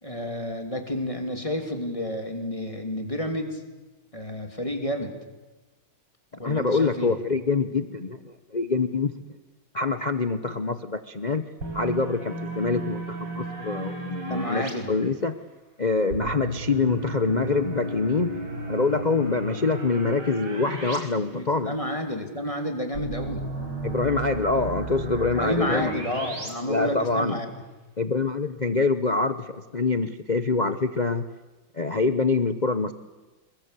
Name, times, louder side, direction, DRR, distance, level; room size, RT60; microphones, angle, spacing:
voice 1, 0.0-3.6 4.1-5.1 6.4-7.1 14.2-14.9 21.3-23.5 25.2-27.5, equal, 15° left, 4 dB, 3.1 m, -30 dB
voice 2, 6.4-9.1 9.7-11.4 11.7-15.4 15.8-18.3 18.7-21.7 23.8-25.9 26.7-27.4 28.0-31.3 31.7-32.9, left 4 dB, 65° left, 10 dB, 0.4 m, -25 dB
sound 1, 11.6-14.7 16.1-21.0 21.3-21.4 22.9-26.5, right 2 dB, 55° right, 5.2 m, -34 dB
25.5 x 22.5 x 8.3 m, 1.2 s
omnidirectional pair, 2.3 m